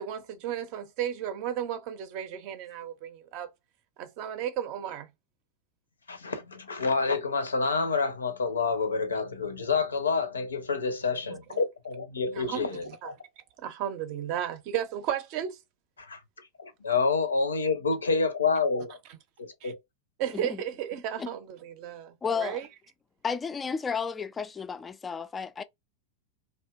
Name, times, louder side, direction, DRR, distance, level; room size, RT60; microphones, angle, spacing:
voice 1, 0.0-3.5 4.0-5.1 11.1-11.6 12.3-15.6 19.6-19.7 20.2-22.7, right 10 dB, 45° right, 0.5 m, -34 dB
voice 2, 6.1-13.1 16.0-16.2 16.6-19.0 19.4-19.8, left 4 dB, 75° left, 0.5 m, -28 dB
voice 3, 22.2-22.6 23.2-25.6, left 6 dB, 15° left, 0.3 m, -32 dB
2.7 x 2.2 x 2.2 m
figure-of-eight pair, 90°, 0 cm